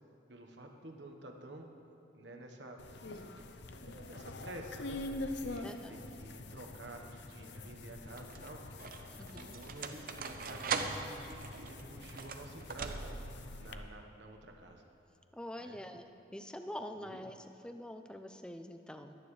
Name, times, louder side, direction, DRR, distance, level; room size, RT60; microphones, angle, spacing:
voice 1, 0.3-1.7 2.1-2.8 3.0-3.4 3.8-8.6 9.3-13.3 13.6-14.8 15.6-15.8 17.0-17.2, right 2 dB, 70° right, 3 dB, 1.2 m, -50 dB
sound 1, 2.8-13.7, left 2 dB, 65° left, 0.7 m, -45 dB
voice 2, 5.6-6.0 9.1-9.6 15.3-16.1 16.3-19.1, left 1 dB, 5° left, 7 dB, 0.5 m, -45 dB
sound 2, 6.7-7.1 7.9-13.4, right 5 dB, 50° right, 0.7 m, -41 dB
22.0 x 9.4 x 3.3 m, 2.9 s
head